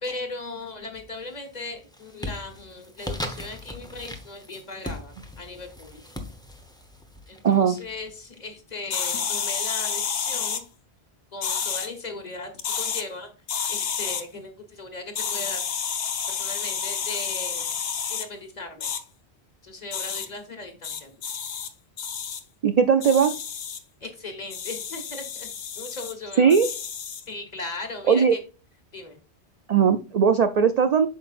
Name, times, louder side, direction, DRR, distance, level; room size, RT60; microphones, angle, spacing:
voice 1, 0.0-6.0 7.3-10.6 11.3-13.3 13.7-15.6 16.3-17.7 18.1-18.9 19.6-21.1 24.0-25.5 25.7-26.6 27.3-28.4 28.9-29.2, left 3 dB, 40° left, 5 dB, 1.4 m, -37 dB
sound 1, 0.9-1.4 1.7-8.4, left 1 dB, 5° left, 0.8 m, -39 dB
voice 2, 7.4-7.8 22.6-23.3 26.4-26.7 28.1-28.4 29.7-31.1, right 6 dB, 55° right, 9 dB, 0.4 m, -19 dB
sound 2, 8.9-10.6 11.4-11.9 12.6-13.0 13.5-14.2 15.1-18.3 18.8-19.0 19.9-20.3 20.8-21.7 22.0-22.4 23.0-23.8 24.5-26.1 26.5-27.2, left 7 dB, 65° left, 1.0 m, -30 dB
8.2 x 6.0 x 2.5 m, 0.34 s
omnidirectional pair, 1.1 m